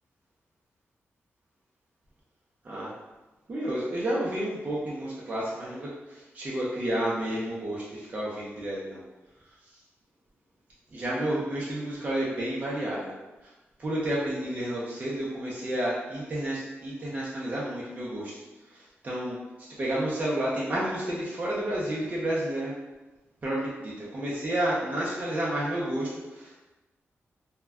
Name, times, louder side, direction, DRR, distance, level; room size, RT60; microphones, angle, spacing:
voice 1, 3.5-9.0 10.9-13.1 13.4-13.5 13.8-18.4 18.7-19.4 19.8-22.7 23.4-26.6, right 1 dB, 35° right, -6 dB, 0.5 m, -31 dB
2.2 x 2.1 x 3.4 m, 1.1 s
wide cardioid pair, 140°, 5 cm